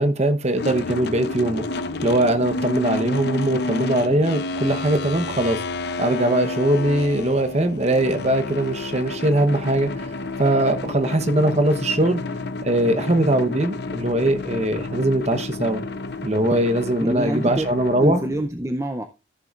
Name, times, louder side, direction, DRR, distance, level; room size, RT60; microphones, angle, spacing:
voice 1, 0.0-1.6 2.0-5.6 6.0-10.0 10.4-12.2 12.6-15.8 16.2-18.2, right 1 dB, 30° right, 0.9 m, -21 dB
sound 1, 0.6-18.5, left 2 dB, 55° left, 0.7 m, -30 dB
voice 2, 17.0-17.7 18.0-19.0, right 1 dB, 15° right, 0.5 m, -25 dB
14.5 x 6.8 x 2.4 m
head